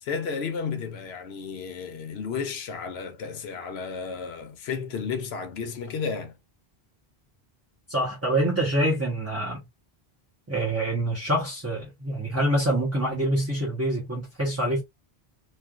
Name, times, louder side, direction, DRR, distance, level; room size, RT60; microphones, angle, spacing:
voice 1, 0.0-6.4, left 5 dB, 80° left, 0.9 m, -33 dB
voice 2, 7.9-9.6 10.5-14.8, right 1 dB, 15° right, 0.8 m, -26 dB
3.2 x 2.3 x 2.4 m
omnidirectional pair, 1.0 m